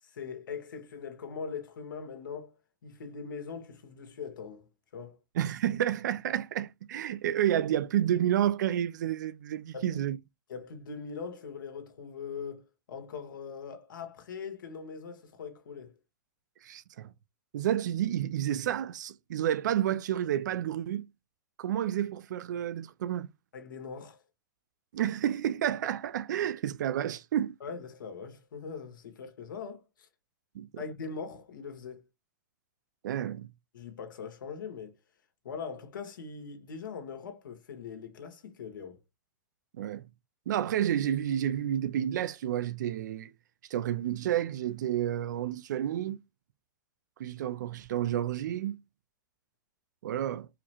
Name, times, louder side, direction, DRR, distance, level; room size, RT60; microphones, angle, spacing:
voice 1, 0.0-2.6 2.8-4.7 4.9-5.2 9.7-10.0 10.5-16.0 23.5-24.2 27.6-30.1 30.8-32.1 33.7-35.0 35.4-39.0, left 5 dB, 80° left, 1.4 m, -41 dB
voice 2, 5.4-10.2 16.6-17.1 17.5-21.1 21.6-23.3 24.9-27.5 30.5-30.8 33.0-33.5 39.8-40.0 40.5-43.3 43.7-46.2 47.2-48.8 50.0-50.5, right 11 dB, 65° right, 0.5 m, -30 dB
4.8 x 2.1 x 2.9 m
hypercardioid pair, 155°, 11 cm